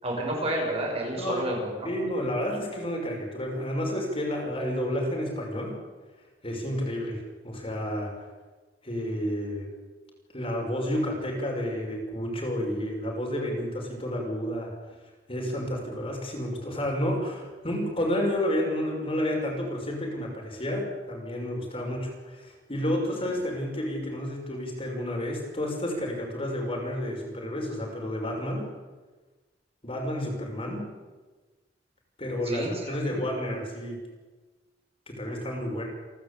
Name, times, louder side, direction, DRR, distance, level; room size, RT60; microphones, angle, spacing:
voice 1, 0.0-1.9 32.4-33.2, right 1 dB, 35° right, -1 dB, 6.8 m, -30 dB
voice 2, 1.1-1.5 1.8-5.7 6.4-8.3 8.8-9.7 10.3-14.7 15.3-28.7 29.8-30.9 32.2-34.0 35.1-35.9, equal, 35° left, 0 dB, 6.0 m, -30 dB
29.0 x 12.5 x 8.5 m, 1.3 s
head